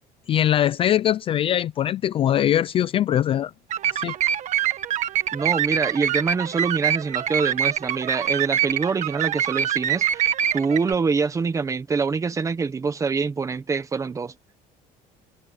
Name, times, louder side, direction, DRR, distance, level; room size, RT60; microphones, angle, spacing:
voice 1, 0.3-3.5 3.9-4.1, left 11 dB, 30° left, 0.4 m, -22 dB
sound 1, 3.7-10.9, right 10 dB, 45° right, 1.5 m, -25 dB
voice 2, 5.3-14.3, right 5 dB, 20° right, 1.2 m, -25 dB
cardioid pair, 170°, 18 cm